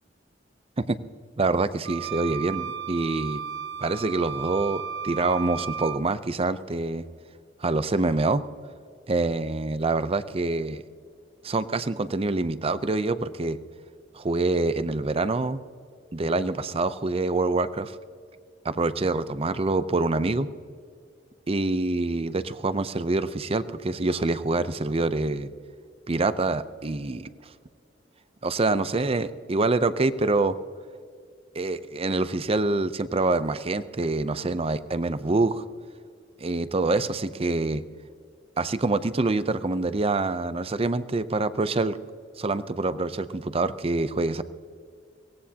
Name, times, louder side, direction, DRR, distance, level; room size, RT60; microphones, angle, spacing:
voice 1, 1.4-3.4 3.8-7.0 7.6-8.4 9.1-10.8 11.4-13.6 14.1-15.6 16.1-18.0 18.6-20.5 21.5-25.5 26.1-27.3 28.4-30.6 31.6-35.6 36.4-37.8 38.6-42.0 42.4-44.4, right 3 dB, 30° right, 13 dB, 0.6 m, -26 dB
sound 1, 1.8-6.0, right 8 dB, 65° right, 0.8 m, -34 dB
23.0 x 18.0 x 2.8 m, 2.2 s
head